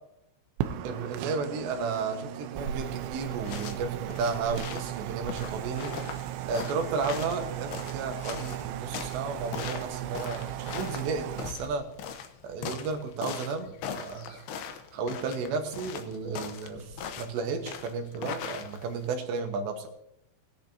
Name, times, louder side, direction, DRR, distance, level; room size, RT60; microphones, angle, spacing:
sound 1, 0.6-11.5, right 11 dB, 90° right, 3.3 m, -36 dB
voice 1, 0.8-5.9 6.4-11.9 12.4-14.5 14.9-19.9, right 4 dB, 70° right, 5 dB, 3.3 m, -33 dB
sound 2, 3.3-19.1, left 7 dB, 75° left, 2.4 m, -40 dB
20.0 x 10.5 x 2.8 m, 0.80 s
omnidirectional pair, 5.5 m